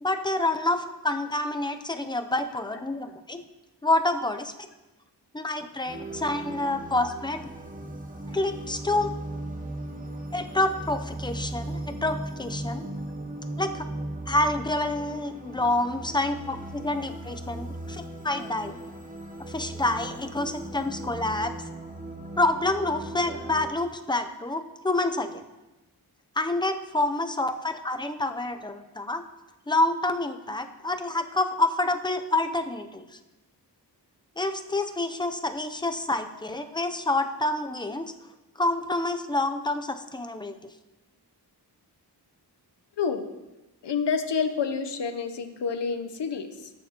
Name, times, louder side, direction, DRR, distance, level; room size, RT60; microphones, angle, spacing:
voice 1, 0.0-3.4 3.8-4.5 5.3-7.4 8.3-9.1 10.3-12.9 13.6-13.8 14.3-18.8 19.5-21.5 22.4-25.5 26.4-29.2 29.7-33.0 34.4-38.1 38.6-40.6, left 2 dB, 10° left, 7 dB, 0.5 m, -28 dB
sound 1, 5.9-23.7, right 1 dB, 20° right, 0.9 m, -37 dB
voice 2, 43.8-46.7, left 5 dB, 80° left, 8 dB, 0.8 m, -28 dB
13.5 x 6.7 x 2.9 m, 1.1 s
wide cardioid pair, 105°, 41 cm